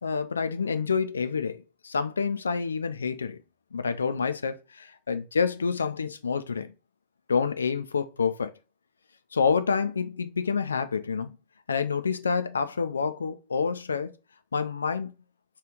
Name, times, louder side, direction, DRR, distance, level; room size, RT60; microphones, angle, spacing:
voice 1, 0.0-3.4 3.7-6.7 7.3-8.5 9.3-11.4 11.7-14.1 14.5-15.1, left 5 dB, 75° left, 0.4 m, -28 dB
3.0 x 2.4 x 3.6 m
figure-of-eight pair, 90°, 0 cm